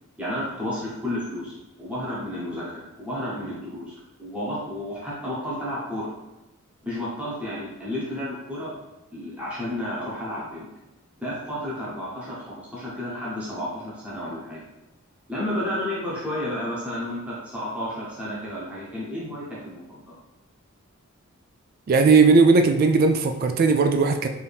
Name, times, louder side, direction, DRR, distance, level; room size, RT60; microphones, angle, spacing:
voice 1, 0.2-1.5 1.8-6.1 6.8-8.7 9.1-10.7 11.2-14.6 15.3-20.0, left 1 dB, 5° right, -8 dB, 1.0 m, -32 dB
voice 2, 21.9-24.3, right 4 dB, 45° right, 6 dB, 0.3 m, -17 dB
4.5 x 2.7 x 3.4 m, 0.99 s
head